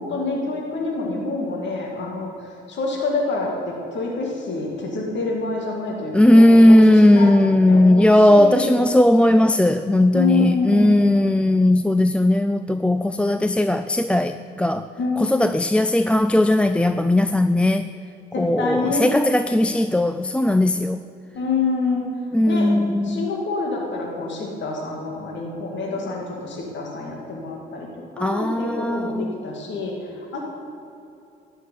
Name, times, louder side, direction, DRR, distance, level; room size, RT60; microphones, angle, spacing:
voice 1, 0.0-2.3 2.7-7.3 7.7-8.8 10.1-10.9 15.0-15.3 18.3-19.1 21.3-22.0 22.5-22.7 23.0-27.9 28.2-30.4, left 3 dB, 65° left, -1 dB, 2.3 m, -27 dB
voice 2, 6.1-14.9 15.2-17.9 18.4-21.0 22.3-23.3 28.2-29.4, left 1 dB, 5° left, 9 dB, 0.3 m, -17 dB
13.0 x 6.6 x 9.5 m, 2.8 s
cardioid pair, 90°, 20 cm